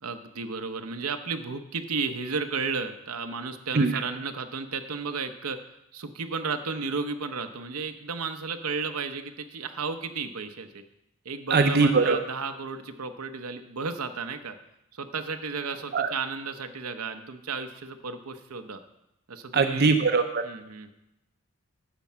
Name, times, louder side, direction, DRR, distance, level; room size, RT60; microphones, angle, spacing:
voice 1, 0.0-5.6 5.9-10.8 11.2-14.6 14.9-18.8 19.3-19.9 20.4-20.9, right 4 dB, 80° right, 8 dB, 0.8 m, -33 dB
voice 2, 11.5-12.2 15.9-16.1 19.5-20.4, right 4 dB, 45° right, 6 dB, 0.6 m, -21 dB
11.5 x 4.5 x 7.3 m, 0.86 s
head